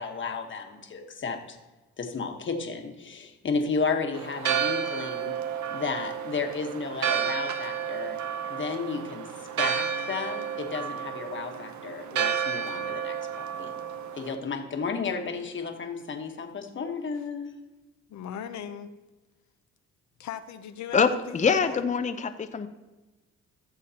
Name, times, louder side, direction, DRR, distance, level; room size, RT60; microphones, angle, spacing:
voice 1, 0.0-1.6 2.0-5.3 5.7-8.2 8.5-13.7 14.1-17.5, left 5 dB, 40° left, 4 dB, 1.3 m, -33 dB
Church bell, 4.1-14.3, right 8 dB, 70° right, 0.8 m, -31 dB
voice 2, 18.1-18.9 20.2-21.8, left 9 dB, 70° left, 9 dB, 0.7 m, -39 dB
voice 3, 20.9-22.7, left 5 dB, 25° left, 8 dB, 0.6 m, -24 dB
15.5 x 6.9 x 2.9 m, 1.1 s
cardioid pair, 90°, 30 cm